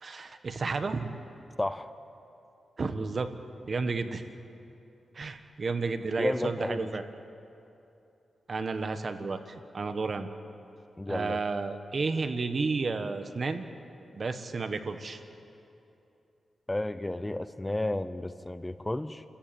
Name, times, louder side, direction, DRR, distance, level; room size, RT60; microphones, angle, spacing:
voice 1, 0.0-1.1 2.8-3.3 3.7-4.2 5.1-7.0 8.5-10.3 11.1-13.6 14.1-15.2, right 4 dB, 45° right, 8 dB, 1.4 m, -32 dB
voice 2, 1.6-1.9 6.2-6.9 11.0-11.4 16.7-19.2, left 1 dB, 15° left, 12 dB, 0.6 m, -32 dB
29.5 x 14.5 x 9.1 m, 2.8 s
wide cardioid pair, 105°, 0 cm